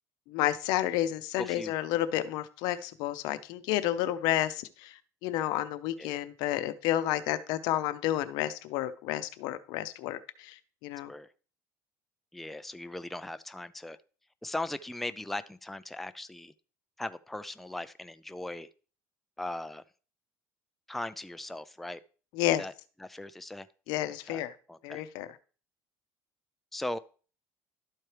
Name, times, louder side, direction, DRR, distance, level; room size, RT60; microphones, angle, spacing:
voice 1, 0.3-11.1 22.3-22.7 23.9-24.5 24.8-25.3, left 13 dB, 75° left, 0.7 m, -31 dB
voice 2, 1.4-1.7 6.0-6.2 11.1-11.3 12.3-14.0 14.4-16.5 17.0-18.7 19.4-19.8 20.9-22.0 22.6-22.7 23.0-23.7 24.3-24.4 24.7-25.0 26.7-27.0, left 1 dB, 5° left, 0.4 m, -38 dB
12.0 x 4.5 x 3.3 m
cardioid pair, 120°, 7 cm